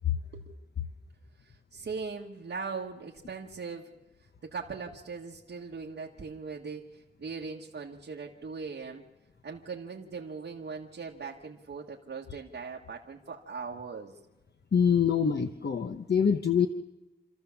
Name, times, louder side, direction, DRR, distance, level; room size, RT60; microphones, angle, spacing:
voice 1, 1.4-3.9 4.4-9.0 9.4-14.2, right 5 dB, 85° right, -2 dB, 1.6 m, -40 dB
voice 2, 14.7-16.7, left 7 dB, 65° left, 7 dB, 0.9 m, -25 dB
28.0 x 13.5 x 7.2 m, 1.1 s
wide cardioid pair, 110°, 19 cm